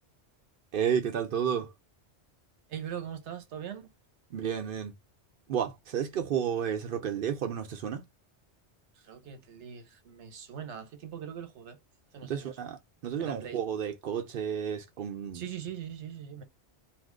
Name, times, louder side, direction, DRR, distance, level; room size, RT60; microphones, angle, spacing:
voice 1, 0.7-1.7 4.3-4.9 5.5-8.0 12.3-15.4, right 8 dB, 60° right, 0.6 m, -31 dB
voice 2, 2.7-3.9 8.9-11.8 12.1-12.5 13.2-13.6 15.3-16.4, right 9 dB, 80° right, 1.0 m, -41 dB
2.7 x 2.5 x 3.6 m
omnidirectional pair, 1.2 m